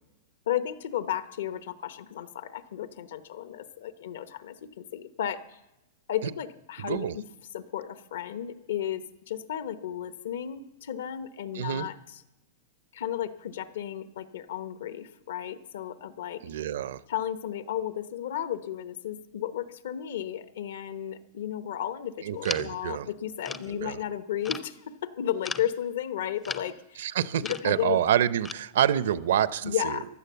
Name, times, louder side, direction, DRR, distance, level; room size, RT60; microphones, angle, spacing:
voice 1, 0.5-5.6 6.1-7.2 7.5-12.2 12.9-16.4 17.1-27.1 27.4-28.0 29.6-30.1, left 11 dB, 80° left, 13 dB, 0.9 m, -33 dB
voice 2, 6.8-7.2 11.5-11.9 16.4-17.0 22.2-23.1 23.7-24.0 27.0-30.0, right 10 dB, 75° right, 17 dB, 0.6 m, -27 dB
sound 1, 22.4-22.8 23.4-23.8 24.4-24.7 25.4-25.7 26.4-26.8 27.4-27.8 28.4-28.5, left 4 dB, 10° left, 0.4 m, -36 dB
15.5 x 11.5 x 7.0 m, 0.95 s
supercardioid pair, 165°, 0 cm